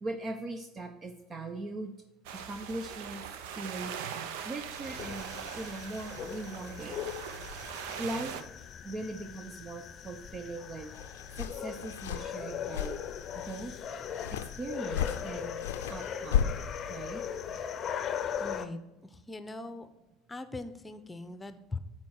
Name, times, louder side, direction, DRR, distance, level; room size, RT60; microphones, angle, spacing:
voice 1, 0.0-1.9 2.3-3.2 3.6-3.9 4.4-7.1 8.0-8.4 8.8-10.9 11.4-13.0 13.3-13.8 14.3-15.6 15.9-16.5 16.9-17.2, right 2 dB, 35° right, 7 dB, 0.7 m, -40 dB
sound 1, 2.3-8.4, right 8 dB, 75° right, 0.7 m, -41 dB
sound 2, 4.8-18.7, left 8 dB, 45° left, 0.6 m, -39 dB
sound 3, 10.9-17.6, left 9 dB, 85° left, 0.5 m, -35 dB
voice 2, 18.4-19.9 20.3-21.8, left 2 dB, 15° left, 11 dB, 0.8 m, -41 dB
8.5 x 4.4 x 4.6 m, 1.0 s
hypercardioid pair, 75°, 0 cm